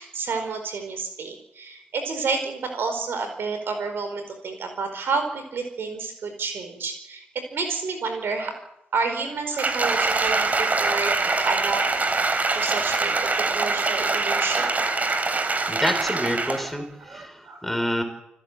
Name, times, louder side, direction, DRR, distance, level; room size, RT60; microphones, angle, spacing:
voice 1, 0.0-7.2 7.5-8.6 8.9-11.8 12.5-14.8 15.7-15.8 17.0-17.2 17.4-17.6, right 4 dB, 50° right, 7 dB, 4.7 m, -30 dB
Applause, 9.6-16.7 17.1-17.3, right 3 dB, 30° right, 3.4 m, -24 dB
voice 2, 15.7-18.0, equal, 5° left, 7 dB, 5.3 m, -28 dB
29.0 x 16.5 x 8.0 m, 0.85 s
figure-of-eight pair, 40°, 5 cm